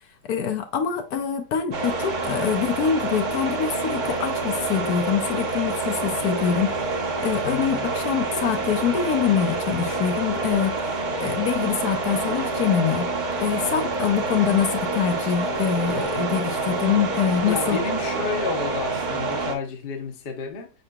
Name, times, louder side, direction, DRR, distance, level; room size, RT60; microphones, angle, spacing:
voice 1, 0.2-6.8 7.2-10.8 11.2-13.1 13.4-17.8, left 8 dB, 70° left, 1.1 m, -25 dB
sound 1, 1.7-19.5, right 3 dB, 40° right, 0.8 m, -27 dB
voice 2, 7.4-7.9 17.5-20.7, left 5 dB, 45° left, 0.8 m, -31 dB
5.4 x 3.8 x 2.2 m
omnidirectional pair, 1.8 m